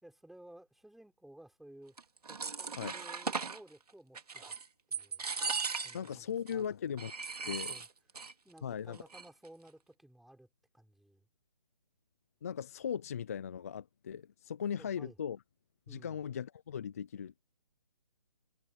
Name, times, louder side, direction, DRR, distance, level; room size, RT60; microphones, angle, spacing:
voice 1, 0.0-2.0 2.3-4.6 4.9-5.3 5.8-6.7 7.4-7.9 8.4-10.5 10.7-11.3 14.8-15.2 15.9-16.2, right 1 dB, ahead, 3.5 m, -56 dB
sound 1, 2.0-3.6 4.1-4.7 4.9-6.1 6.5-6.6 7.0-8.3 8.6-8.7 8.9-9.5, right 5 dB, 80° right, 2.8 m, -38 dB
voice 2, 5.9-7.1 7.5-7.7 8.6-9.0 12.4-15.4 15.9-17.4, left 8 dB, 25° left, 0.4 m, -38 dB
hypercardioid pair, 160°, 19 cm